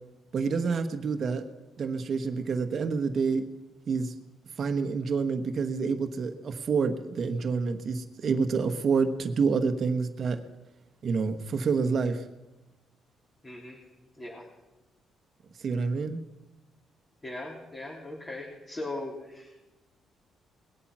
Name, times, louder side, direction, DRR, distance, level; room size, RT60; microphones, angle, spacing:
voice 1, 0.3-1.4 1.8-3.4 3.9-4.2 4.6-10.4 11.0-12.2 15.6-16.2, right 5 dB, 50° right, 6 dB, 1.2 m, -28 dB
voice 2, 13.4-13.8 14.2-14.5 17.2-19.5, left 2 dB, 25° left, -5 dB, 3.3 m, -39 dB
20.0 x 8.6 x 6.1 m, 1.0 s
cardioid pair, 90°, 0 cm